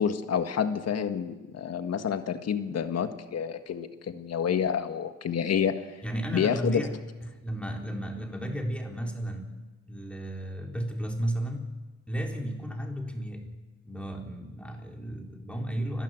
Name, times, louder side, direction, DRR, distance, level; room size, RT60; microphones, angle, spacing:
voice 1, 0.0-5.8 6.3-6.8, left 7 dB, 55° left, 8 dB, 1.7 m, -28 dB
voice 2, 6.0-9.5 9.9-11.7 12.1-13.6 13.8-16.0, right 1 dB, 5° left, 1 dB, 4.1 m, -33 dB
29.5 x 12.0 x 7.9 m, 1.2 s
cardioid pair, 90°, 30 cm